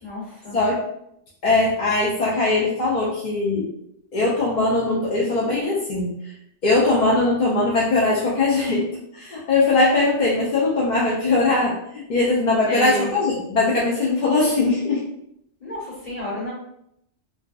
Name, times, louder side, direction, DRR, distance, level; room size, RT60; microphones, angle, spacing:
voice 1, 0.0-0.6 12.7-13.1 15.6-16.5, left 2 dB, 40° left, -9 dB, 1.4 m, -30 dB
voice 2, 0.5-0.8 1.4-3.7 4.1-6.3 6.6-8.9 9.1-15.0, left 2 dB, 55° left, -5 dB, 0.5 m, -20 dB
2.6 x 2.3 x 2.2 m, 0.76 s
omnidirectional pair, 1.2 m